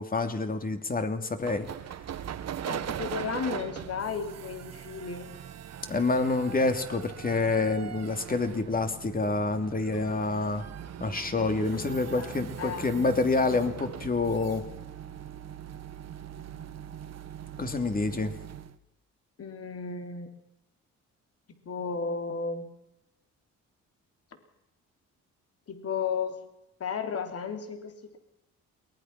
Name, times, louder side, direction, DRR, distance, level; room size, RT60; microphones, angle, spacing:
voice 1, 0.0-1.7 5.9-10.6 11.0-14.6 17.6-18.3, left 3 dB, 30° left, 7 dB, 2.8 m, -27 dB
sound 1, 1.4-18.8, right 9 dB, 60° right, 1.4 m, -41 dB
voice 2, 2.6-5.3 11.7-13.1 13.4-13.9 19.4-20.3 21.5-22.7 25.7-26.4 26.8-28.2, left 5 dB, 50° left, 6 dB, 3.7 m, -34 dB
22.5 x 19.5 x 6.0 m, 0.89 s
cardioid pair, 90°, 30 cm